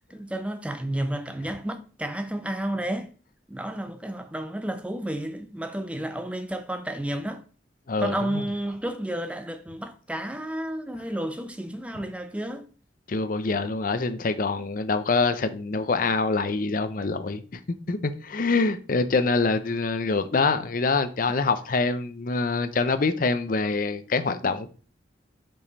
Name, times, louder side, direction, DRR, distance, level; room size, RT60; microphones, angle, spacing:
voice 1, 0.1-3.1 3.5-7.4 8.0-12.7, right 1 dB, 5° right, 0.7 m, -31 dB
voice 2, 7.9-8.4 13.1-17.6 17.9-24.7, left 3 dB, 50° left, 0.6 m, -25 dB
5.6 x 5.2 x 4.0 m
head